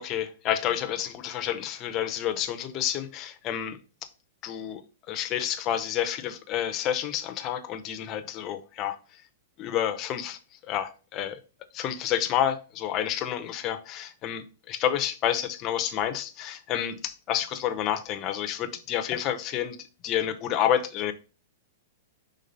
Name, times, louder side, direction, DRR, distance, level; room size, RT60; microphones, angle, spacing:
voice 1, 0.0-3.8 4.4-4.8 5.1-9.0 9.6-10.4 10.7-11.4 11.7-19.8 20.0-21.1, left 10 dB, 25° left, 0.7 m, -29 dB
5.4 x 3.7 x 5.2 m
supercardioid pair, 165°, 0 cm